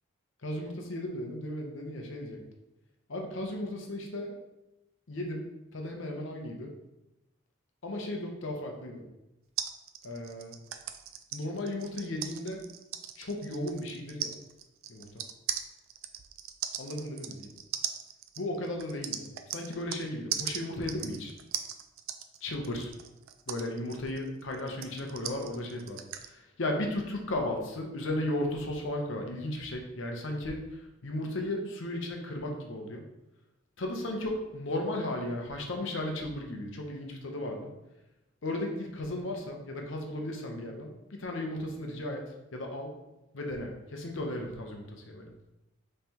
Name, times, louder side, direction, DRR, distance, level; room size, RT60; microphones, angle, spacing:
voice 1, 0.4-2.4 3.1-4.4 5.1-6.8 7.8-9.1 10.0-10.6 11.3-12.6 13.2-14.4 14.9-15.2 16.8-17.5 18.4-21.3 22.4-22.9 23.5-30.6 31.0-33.1 33.8-37.8 38.4-43.0 43.3-45.3, left 1 dB, 70° left, 2 dB, 0.8 m, -35 dB
sound 1, 9.6-20.0 20.3-26.3, right 10 dB, 90° right, 0.4 m, -38 dB
5.4 x 3.2 x 2.9 m, 0.95 s
head